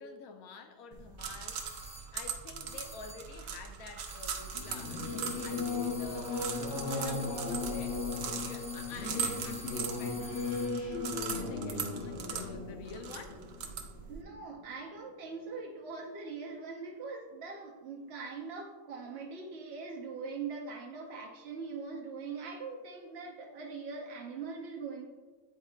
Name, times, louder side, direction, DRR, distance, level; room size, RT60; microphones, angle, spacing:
voice 1, 0.0-1.8 2.1-10.3 11.0-13.4, left 4 dB, 75° left, 6 dB, 1.1 m, -49 dB
sound 1, 0.9-14.2, right 7 dB, 75° right, 1.1 m, -40 dB
sound 2, 1.5-2.2 2.7-3.4 4.0-10.8, right 1 dB, 10° right, 0.5 m, -48 dB
Singing / Musical instrument, 4.5-14.6, left 4 dB, 55° left, 0.9 m, -37 dB
voice 2, 14.1-25.1, right 4 dB, 55° right, 0 dB, 0.8 m, -42 dB
9.1 x 4.6 x 2.4 m, 1.4 s
omnidirectional pair, 1.5 m